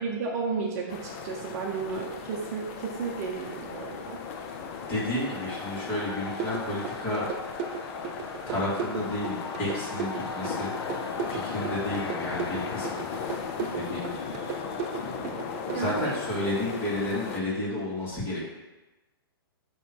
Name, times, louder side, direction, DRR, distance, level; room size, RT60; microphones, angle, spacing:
voice 1, 0.0-4.2 15.7-16.1, right 5 dB, 40° right, 0 dB, 0.8 m, -33 dB
sound 1, 0.9-17.4, left 6 dB, 35° left, 0.6 m, -38 dB
sound 2, 3.2-16.9, left 5 dB, 80° left, 1.0 m, -40 dB
voice 2, 4.9-7.3 8.5-13.1 13.7-14.3 15.0-18.4, left 1 dB, 15° left, -7 dB, 2.3 m, -32 dB
sound 3, 6.4-15.8, right 7 dB, 20° right, 0.3 m, -35 dB
9.0 x 3.2 x 4.5 m, 1.1 s
hypercardioid pair, 155°, 13 cm